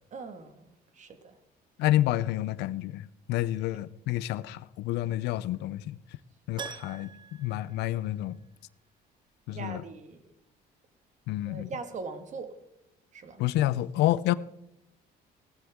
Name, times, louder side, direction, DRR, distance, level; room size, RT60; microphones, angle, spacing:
voice 1, 0.1-1.4 9.5-10.2 11.5-12.6 13.1-13.4, right 4 dB, 45° right, 1.9 m, -41 dB
voice 2, 1.8-6.0 6.5-7.1 7.4-8.4 9.5-9.8 11.3-11.7 13.4-14.3, left 14 dB, 85° left, 0.6 m, -29 dB
Keyboard (musical), 6.6-8.6 8.9-9.0 11.7-11.8 12.0-12.1, right 7 dB, 25° right, 0.5 m, -44 dB
18.0 x 13.0 x 3.7 m
cardioid pair, 110°, 17 cm